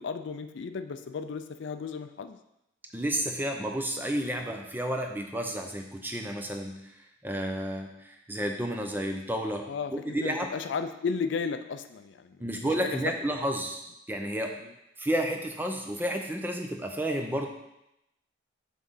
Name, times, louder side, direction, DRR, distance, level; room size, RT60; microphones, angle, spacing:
voice 1, 0.0-2.4 9.7-12.4 12.8-13.0, left 5 dB, 70° left, 9 dB, 0.4 m, -34 dB
voice 2, 2.9-7.0 7.2-10.5 12.4-14.6 15.0-17.5, right 1 dB, 10° right, 3 dB, 0.5 m, -31 dB
5.8 x 3.7 x 5.5 m, 0.85 s
head